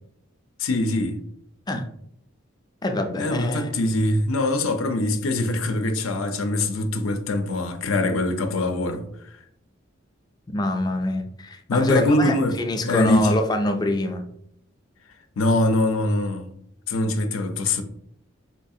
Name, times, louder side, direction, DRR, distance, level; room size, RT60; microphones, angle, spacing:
voice 1, 0.6-1.2 3.2-9.4 11.7-13.3 15.4-16.5 16.9-17.8, left 2 dB, 85° left, 0.5 m, -23 dB
voice 2, 2.8-3.7 10.5-14.2, left 1 dB, 20° left, 0.3 m, -25 dB
4.4 x 2.4 x 2.7 m
head